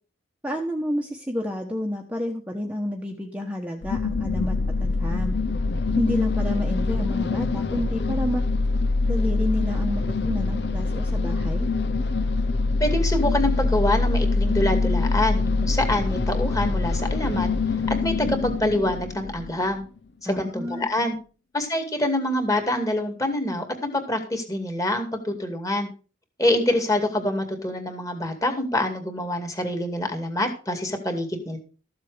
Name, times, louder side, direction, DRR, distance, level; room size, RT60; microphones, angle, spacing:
voice 1, 0.4-5.4 6.0-8.4 9.1-11.7 20.2-20.9, equal, 5° right, 1 dB, 1.1 m, -30 dB
sound 1, 3.8-19.7, left 3 dB, 60° left, 0.7 m, -24 dB
voice 2, 12.8-17.5 17.9-19.8 20.2-21.2 21.5-25.9 26.4-31.6, left 1 dB, 15° left, 5 dB, 2.3 m, -25 dB
14.0 x 7.5 x 5.1 m, 0.37 s
head